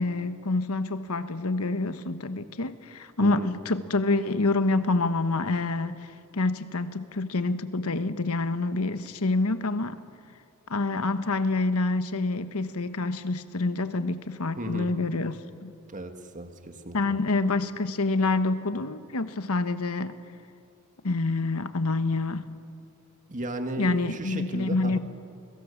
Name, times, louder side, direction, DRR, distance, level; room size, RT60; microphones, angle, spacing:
voice 1, 0.0-6.1 6.3-10.0 10.7-15.7 16.9-20.2 21.0-22.5 23.8-25.0, left 3 dB, 80° left, 1.2 m, -27 dB
voice 2, 14.6-14.9 15.9-17.2 23.3-25.0, right 1 dB, 35° right, 2.0 m, -35 dB
30.0 x 22.0 x 7.2 m
head